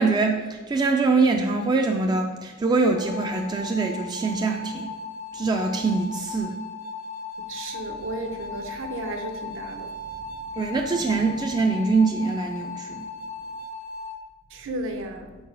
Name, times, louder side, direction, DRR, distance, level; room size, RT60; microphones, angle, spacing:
voice 1, 0.0-4.9 5.3-6.6 10.6-13.1, right 3 dB, 20° right, 2 dB, 0.3 m, -23 dB
sound 1, 3.0-14.2, left 4 dB, 75° left, 0.7 m, -37 dB
voice 2, 7.5-10.3 14.5-15.3, right 1 dB, 60° right, 6 dB, 0.7 m, -34 dB
4.7 x 4.5 x 5.2 m, 1.2 s
head